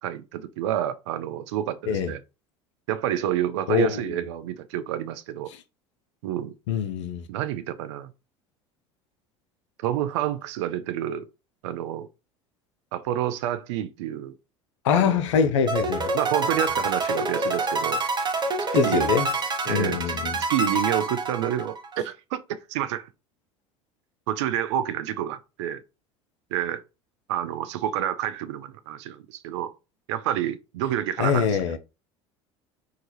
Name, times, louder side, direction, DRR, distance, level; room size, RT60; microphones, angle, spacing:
voice 1, 0.0-2.2 2.9-5.5 6.2-6.5 7.3-8.1 9.8-11.3 11.6-12.1 12.9-14.4 14.9-15.2 16.1-18.0 18.7-19.1 19.7-20.0 20.4-22.4 22.7-23.1 24.3-25.8 26.5-26.8 27.3-29.7 30.1-31.5, right 11 dB, 75° right, 0.4 m, -28 dB
voice 2, 3.7-4.2 6.7-7.2 14.8-16.1 18.7-19.3 19.7-20.4 31.2-31.8, left 6 dB, 85° left, 0.4 m, -23 dB
sound 1, 15.7-22.0, right 3 dB, 30° right, 0.7 m, -27 dB
2.8 x 2.3 x 2.9 m
hypercardioid pair, 75°, 15 cm